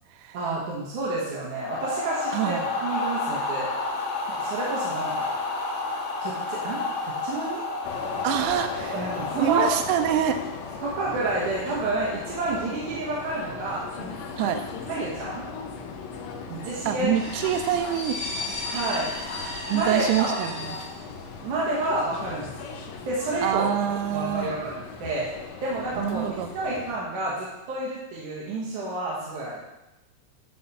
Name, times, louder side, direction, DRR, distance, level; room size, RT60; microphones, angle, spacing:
voice 1, 0.3-3.7 4.3-5.3 6.2-7.7 8.9-9.7 10.8-14.1 14.9-15.4 16.5-17.1 18.7-19.1 19.7-20.4 21.4-22.7 23.0-26.3 26.5-29.6, right 2 dB, 60° right, -5 dB, 2.4 m, -29 dB
sound 1, 1.5-10.6, left 3 dB, 55° left, 1.8 m, -31 dB
voice 2, 2.3-2.7 8.2-9.1 9.4-10.4 10.6-10.8 14.4-14.6 16.9-18.2 19.7-20.8 23.4-24.5 26.0-26.5, right 10 dB, 85° right, 6 dB, 2.6 m, -26 dB
sound 2, 7.8-27.0, left 5 dB, 75° left, 2.3 m, -38 dB
sound 3, 17.1-21.5 21.8-21.9, left 2 dB, 20° left, 1.6 m, -34 dB
10.5 x 4.2 x 5.4 m, 0.97 s
omnidirectional pair, 4.6 m